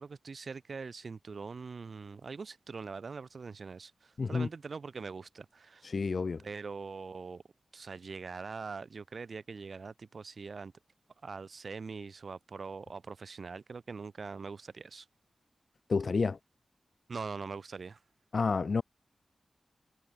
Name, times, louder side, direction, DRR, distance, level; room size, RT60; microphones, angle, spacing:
voice 1, 0.0-5.9 6.4-7.4 7.7-10.7 11.2-15.1 17.1-18.0, right 4 dB, 60° right, 2.7 m, -43 dB
voice 2, 4.2-4.5 5.8-6.4 15.9-16.4 18.3-18.8, left 4 dB, 55° left, 3.0 m, -29 dB
wide cardioid pair, 105°, 0 cm